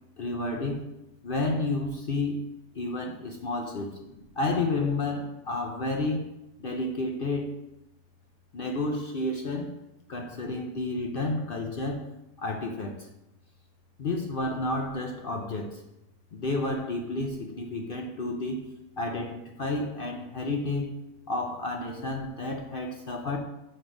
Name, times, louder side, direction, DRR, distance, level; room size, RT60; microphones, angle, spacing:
voice 1, 0.2-0.9 1.2-2.5 2.7-7.6 8.5-9.8 10.1-12.1 12.4-13.1 14.0-15.8 16.3-21.0 21.3-23.4, left 2 dB, 65° left, 3 dB, 0.5 m, -31 dB
6.9 x 4.3 x 6.2 m, 0.90 s
omnidirectional pair, 1.7 m